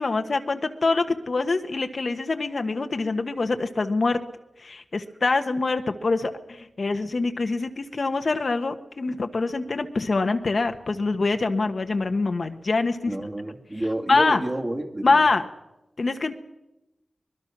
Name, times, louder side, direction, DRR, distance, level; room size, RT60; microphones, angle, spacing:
voice 1, 0.0-4.2 4.6-13.1 14.1-14.4 15.0-15.4 16.0-16.3, left 3 dB, 60° left, 7 dB, 1.3 m, -24 dB
voice 2, 13.1-15.2, right 1 dB, 30° right, 2 dB, 2.8 m, -29 dB
24.0 x 20.5 x 6.1 m, 0.93 s
wide cardioid pair, 75°, 0 cm